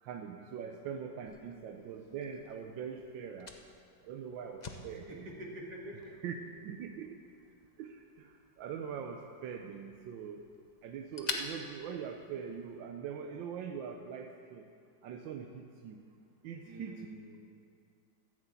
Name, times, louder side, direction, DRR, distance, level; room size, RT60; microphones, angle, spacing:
voice 1, 0.0-3.5 4.0-5.3 6.2-6.3 6.6-7.2 7.8-10.4 10.8-14.6 15.0-16.0 16.4-17.1, right 7 dB, 85° right, 4 dB, 1.4 m, -42 dB
Fire, 1.3-12.8, left 3 dB, 50° left, 0.5 m, -48 dB
voice 2, 4.9-6.2 16.6-17.4, equal, 60° right, -1 dB, 2.3 m, -46 dB
13.0 x 6.9 x 8.2 m, 2.3 s
omnidirectional pair, 2.0 m